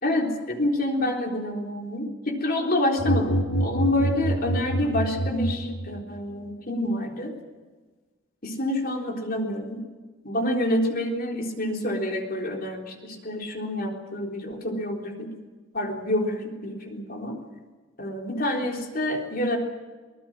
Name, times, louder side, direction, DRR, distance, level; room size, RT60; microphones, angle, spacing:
voice 1, 0.0-7.3 8.4-9.8 10.2-15.3 15.7-17.4 18.0-19.6, left 1 dB, 45° left, 2 dB, 3.8 m, -27 dB
sound 1, 3.0-6.2, right 1 dB, 85° left, 2.5 m, -27 dB
24.5 x 19.5 x 7.6 m, 1.3 s
head